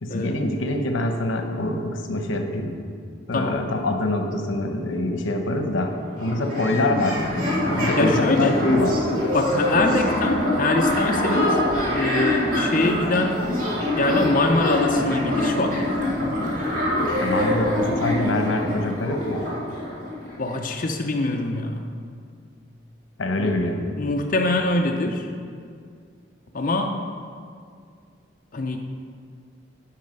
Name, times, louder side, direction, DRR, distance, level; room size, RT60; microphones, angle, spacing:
voice 1, 0.0-2.7 3.3-7.3 7.6-8.9 17.2-19.4 23.2-23.9, left 1 dB, 90° left, 5 dB, 0.8 m, -25 dB
sound 1, 5.7-5.8 6.0-20.6, left 1 dB, 45° right, 2.2 m, -24 dB
voice 2, 7.8-8.6 9.3-11.6 11.9-13.4 14.0-15.9 20.4-21.9 23.4-23.6 24.0-25.3 26.5-27.0 28.5-28.8, left 2 dB, 45° left, 2 dB, 0.5 m, -24 dB
8.6 x 5.5 x 5.2 m, 2.2 s
head